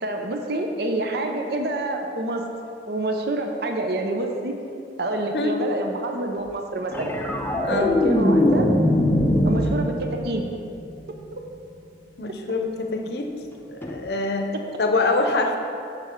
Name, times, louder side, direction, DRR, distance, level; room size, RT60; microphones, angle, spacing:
voice 1, 0.0-2.4 2.9-4.5 5.0-7.2 7.7-8.7 9.5-10.4, right 1 dB, 60° right, 3 dB, 0.6 m, -27 dB
sound 1, 6.9-11.4 13.8-14.0, left 1 dB, 10° left, 0.5 m, -22 dB
voice 2, 12.2-13.3 13.7-14.5 14.8-15.6, left 3 dB, 65° left, 4 dB, 0.7 m, -24 dB
7.0 x 6.6 x 4.5 m, 2.6 s
head